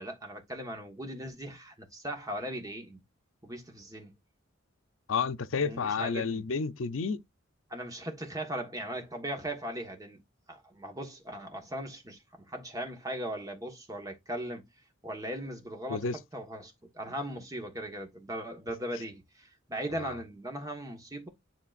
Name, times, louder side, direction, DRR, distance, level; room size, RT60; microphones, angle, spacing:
voice 1, 0.0-3.0 3.4-4.1 5.6-6.4 7.7-10.2 10.5-12.2 12.5-14.6 15.0-16.1 16.3-21.3, right 1 dB, 20° right, 1.2 m, -38 dB
voice 2, 5.1-7.2 15.9-16.2 19.9-20.2, left 5 dB, 90° left, 0.6 m, -31 dB
10.0 x 3.8 x 2.4 m
head